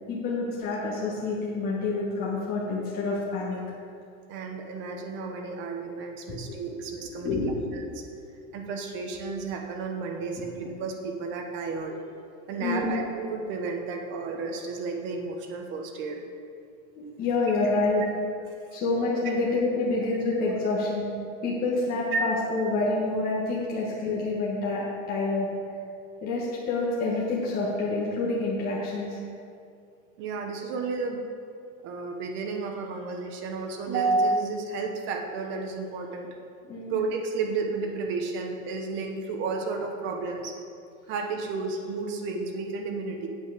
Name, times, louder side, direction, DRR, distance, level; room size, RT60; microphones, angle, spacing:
voice 1, 0.1-3.6 7.2-7.6 8.1-8.3 12.6-12.9 16.9-18.0 18.7-21.1 21.4-25.8 26.2-29.2 36.6-37.0, left 3 dB, 20° left, -7 dB, 1.4 m, -28 dB
voice 2, 4.3-7.4 8.5-11.9 12.5-16.2 22.1-22.2 23.7-23.8 30.2-31.2 31.8-36.3 36.9-40.6 41.1-43.3, right 3 dB, 30° right, 3 dB, 1.0 m, -31 dB
8.5 x 8.1 x 4.9 m, 2.4 s
supercardioid pair, 165°, 40 cm